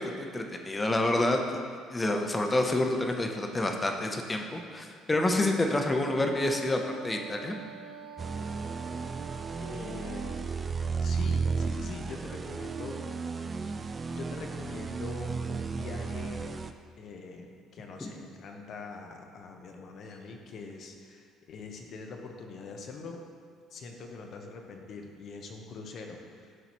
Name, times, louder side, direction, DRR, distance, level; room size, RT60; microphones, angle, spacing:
voice 1, 0.0-1.4 1.9-7.5 18.0-18.1, left 2 dB, 20° left, 3 dB, 0.8 m, -28 dB
Wind instrument woodwind instrument, 5.9-10.5, right 5 dB, 70° right, 0.7 m, -46 dB
sound 1, 8.2-16.7, right 5 dB, 35° right, 0.4 m, -34 dB
voice 2, 9.6-10.7 11.0-13.0 14.1-16.4 17.0-23.2 23.7-26.5, left 3 dB, 60° left, 2 dB, 0.8 m, -43 dB
10.5 x 4.0 x 3.0 m, 2.1 s
supercardioid pair, 70°, 0 cm